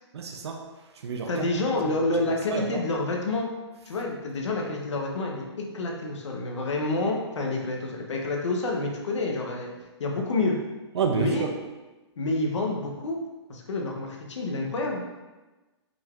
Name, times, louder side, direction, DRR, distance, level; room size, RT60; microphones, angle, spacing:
voice 1, 0.1-0.6 1.0-1.4 1.8-1.9 2.5-2.8 10.9-11.5, right 6 dB, 65° right, 3 dB, 0.6 m, -29 dB
voice 2, 1.3-3.5 3.9-9.7 10.0-10.6 11.1-11.5 12.2-13.2 13.5-15.0, left 2 dB, 80° left, 0 dB, 0.9 m, -28 dB
5.2 x 2.4 x 3.6 m, 1.1 s
hypercardioid pair, 160°, 15 cm